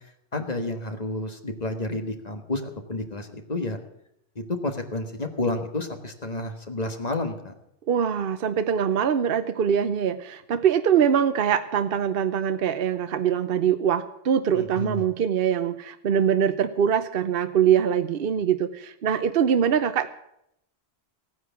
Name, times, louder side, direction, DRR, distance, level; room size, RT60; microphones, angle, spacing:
voice 1, 0.3-3.8 4.3-7.5 14.5-15.1 16.2-16.3, left 2 dB, 40° left, 6 dB, 1.6 m, -30 dB
voice 2, 7.9-20.1, right 8 dB, 60° right, 10 dB, 0.9 m, -23 dB
16.0 x 9.6 x 7.1 m, 0.76 s
omnidirectional pair, 1.1 m